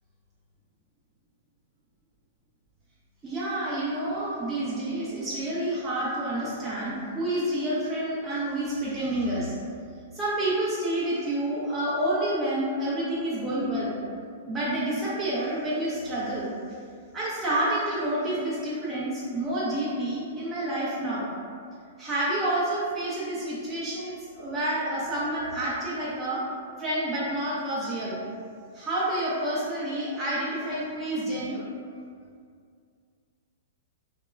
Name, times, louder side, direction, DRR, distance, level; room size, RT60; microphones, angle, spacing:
voice 1, 3.2-9.6 10.1-13.9 14.5-16.5 17.1-21.3 22.0-26.4 26.8-28.2 28.7-31.6, right 1 dB, 15° right, -9 dB, 0.5 m, -29 dB
2.8 x 2.1 x 2.3 m, 2.2 s
hypercardioid pair, 120°, 0 cm